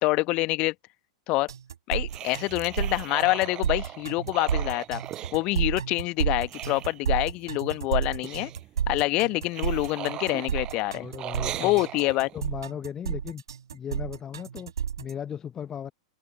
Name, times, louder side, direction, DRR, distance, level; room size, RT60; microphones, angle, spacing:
voice 1, 0.0-0.7 1.3-1.5 1.9-5.0 5.3-8.5 8.9-11.1 11.6-12.3, left 22 dB, 40° left, 1.4 m, -26 dB
sound 1, 1.5-15.1, right 8 dB, 70° right, 2.0 m, -31 dB
sound 2, 2.1-6.1 6.3-7.5 7.7-7.8 8.0-8.7 9.1-12.5, right 13 dB, 30° right, 7.6 m, -39 dB
voice 2, 11.0-11.8 12.3-13.4 13.7-14.7 15.0-15.9, left 8 dB, 20° left, 0.9 m, -36 dB
open air
figure-of-eight pair, 95°, 3 cm